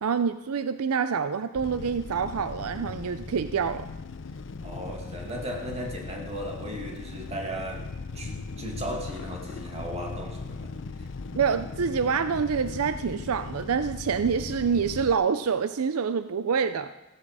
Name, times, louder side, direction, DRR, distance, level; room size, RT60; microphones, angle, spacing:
voice 1, 0.0-3.9 11.4-16.9, right 6 dB, 80° right, 11 dB, 0.5 m, -26 dB
sound 1, 1.5-15.2, left 4 dB, 60° left, 0.6 m, -38 dB
voice 2, 4.6-7.9 8.1-11.4, equal, 30° right, 1 dB, 2.4 m, -36 dB
15.0 x 13.5 x 4.9 m, 1.1 s
head